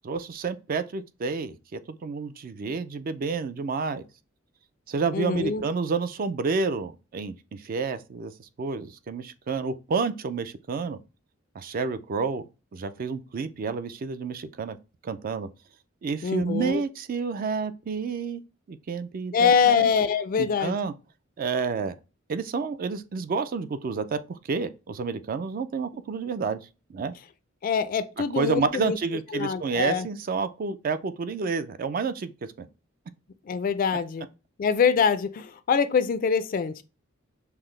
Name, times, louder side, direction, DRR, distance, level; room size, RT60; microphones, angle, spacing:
voice 1, 0.0-4.0 4.9-11.0 11.6-12.5 12.7-14.8 15.0-15.5 16.0-18.4 18.7-19.9 20.4-20.9 21.4-21.9 22.3-26.6 26.9-27.1 28.4-32.3 32.6-32.7, right 4 dB, 45° right, 0.3 m, -29 dB
voice 2, 5.1-5.6 16.2-16.8 19.3-20.8 27.6-29.0 29.3-30.1 33.5-34.3 34.6-36.8, left 6 dB, 45° left, 0.3 m, -24 dB
5.7 x 2.0 x 3.1 m
head